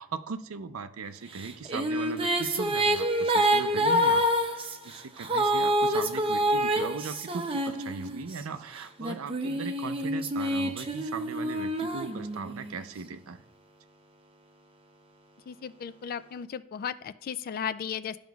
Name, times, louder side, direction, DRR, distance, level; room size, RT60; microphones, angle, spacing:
voice 1, 0.0-13.4, right 5 dB, 90° right, 10 dB, 0.5 m, -39 dB
sound 1, 1.4-8.4 9.0-12.7, right 1 dB, 25° right, 0.6 m, -27 dB
voice 2, 15.5-18.2, left 8 dB, 45° left, 15 dB, 0.3 m, -35 dB
12.5 x 5.0 x 2.3 m, 0.87 s
head